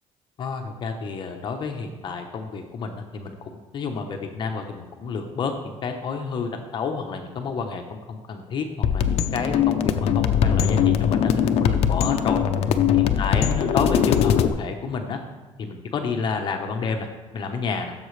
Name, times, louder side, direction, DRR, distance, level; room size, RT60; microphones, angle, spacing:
voice 1, 0.4-8.7 8.9-12.4 12.9-15.2 15.6-17.1 17.3-17.9, left 5 dB, 40° left, 4 dB, 0.9 m, -30 dB
sound 1, 8.8-14.5, left 8 dB, 60° left, 0.6 m, -21 dB
15.0 x 7.3 x 3.3 m, 1.2 s
cardioid pair, 155°, 12 cm